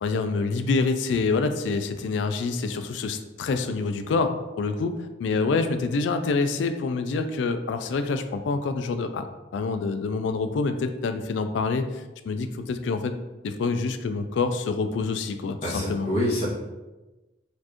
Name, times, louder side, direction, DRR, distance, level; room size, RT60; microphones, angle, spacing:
voice 1, 0.0-9.2 9.5-13.1 13.4-16.1, left 4 dB, 70° left, 8 dB, 0.3 m, -26 dB
voice 2, 15.6-16.4, left 1 dB, 35° left, -8 dB, 1.0 m, -26 dB
4.3 x 2.5 x 2.9 m, 1.1 s
head